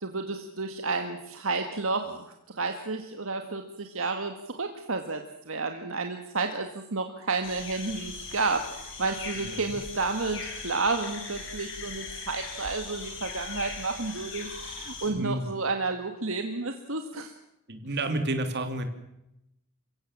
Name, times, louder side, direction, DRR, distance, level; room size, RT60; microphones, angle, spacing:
voice 1, 0.0-17.3, right 3 dB, 65° right, 5 dB, 1.8 m, -31 dB
sound 1, 7.4-15.1, left 4 dB, 60° left, 6.5 m, -39 dB
voice 2, 9.4-9.7 15.1-15.5 17.7-18.8, right 1 dB, 50° right, 7 dB, 3.0 m, -31 dB
28.5 x 16.5 x 7.4 m, 0.86 s
head